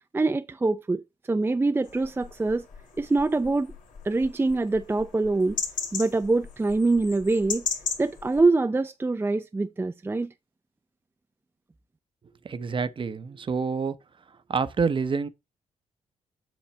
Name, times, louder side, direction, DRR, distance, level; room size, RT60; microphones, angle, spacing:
voice 1, 0.1-1.0 1.3-2.7 3.0-3.7 4.0-5.6 5.9-7.6 8.0-10.3, right 3 dB, 15° right, 0.5 m, -24 dB
sound 1, 1.8-8.4, left 6 dB, 85° left, 1.9 m, -37 dB
voice 2, 12.4-14.0 14.5-15.3, right 5 dB, 40° right, 0.8 m, -27 dB
7.3 x 6.2 x 3.3 m
cardioid pair, 80°, 13 cm